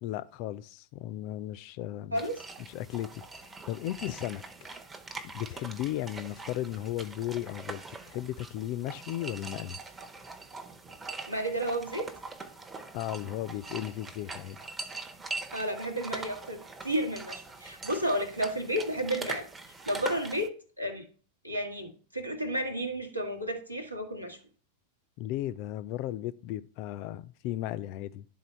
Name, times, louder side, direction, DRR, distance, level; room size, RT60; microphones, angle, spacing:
voice 1, 0.0-2.2 2.7-4.4 5.3-9.8 12.9-14.6 25.2-28.3, left 13 dB, 45° left, 0.4 m, -35 dB
sound 1, 2.1-20.5, right 3 dB, 15° right, 0.7 m, -43 dB
voice 2, 2.1-2.4 11.3-12.1 15.5-19.5 19.9-21.0 21.4-24.4, right 1 dB, 90° right, 1.2 m, -32 dB
11.0 x 3.8 x 4.3 m
figure-of-eight pair, 90°, 0 cm